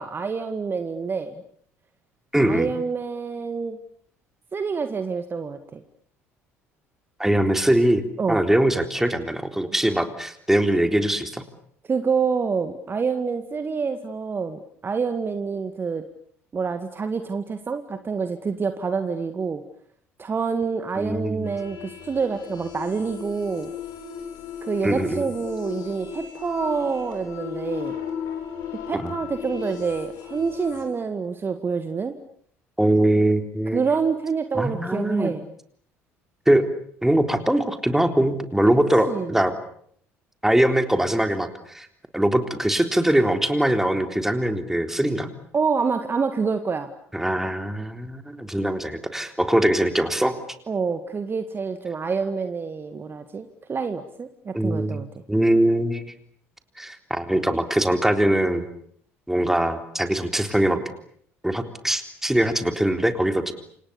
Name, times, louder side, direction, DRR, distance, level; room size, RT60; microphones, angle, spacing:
voice 1, 0.0-1.3 2.4-3.8 4.5-5.8 8.2-8.4 11.9-16.0 16.5-19.6 20.2-23.7 24.6-27.9 28.9-32.2 33.7-35.4 38.6-38.7 39.1-39.4 45.5-46.9 50.7-55.1, right 5 dB, 30° right, 9 dB, 2.0 m, -27 dB
voice 2, 2.3-2.7 7.2-8.0 8.3-11.4 21.0-21.5 24.8-25.2 28.9-29.1 32.8-33.8 34.5-35.3 36.5-36.6 37.0-39.5 40.4-41.9 42.1-45.3 47.1-50.3 54.5-55.0 55.3-56.0 56.8-58.6 59.3-60.8 61.4-63.5, right 1 dB, 5° right, 7 dB, 3.8 m, -22 dB
sound 1, 21.4-30.8, left 8 dB, 60° left, 6.6 m, -36 dB
29.0 x 27.5 x 7.2 m, 0.63 s
figure-of-eight pair, 55°, 7 cm